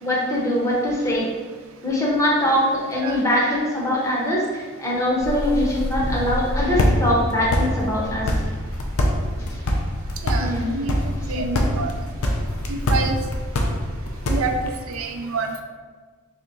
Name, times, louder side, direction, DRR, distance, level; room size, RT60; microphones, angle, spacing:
voice 1, 0.0-1.3 1.8-8.3 9.4-9.7 10.4-11.7, left 1 dB, 15° left, -5 dB, 0.7 m, -23 dB
sound 1, 5.2-14.8, left 1 dB, 80° left, 0.5 m, -24 dB
voice 2, 10.2-10.9 11.3-11.4 11.8-11.9 12.7-13.2 14.3-14.5 14.9-15.6, right 4 dB, 70° right, 5 dB, 0.4 m, -27 dB
3.4 x 2.8 x 3.8 m, 1.5 s
head